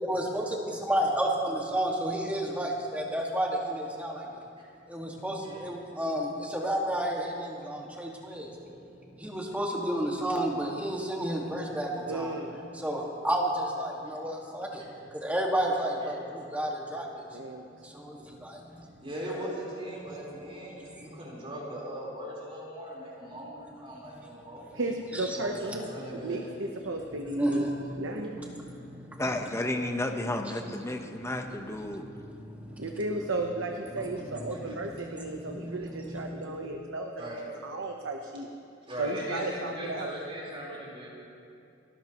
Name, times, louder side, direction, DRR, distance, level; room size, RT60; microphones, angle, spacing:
voice 1, 0.0-4.4 4.9-8.5 9.2-12.4 12.7-17.2 17.8-18.9 25.1-25.3 27.2-29.2 31.0-31.2 31.9-33.0 33.9-36.6, right 1 dB, 10° right, -2 dB, 1.9 m, -32 dB
voice 2, 12.1-12.6 17.3-17.7 24.7-27.7 28.0-28.4 32.8-37.4 37.6-38.5 39.0-40.1, right 2 dB, 85° right, 2 dB, 1.0 m, -34 dB
voice 3, 19.0-24.8 25.3-26.5 34.7-34.8 37.2-37.5 38.9-41.1, equal, 30° right, -5 dB, 4.3 m, -39 dB
voice 4, 29.2-32.0, left 1 dB, 15° left, 4 dB, 1.0 m, -32 dB
29.5 x 13.0 x 3.1 m, 2.6 s
head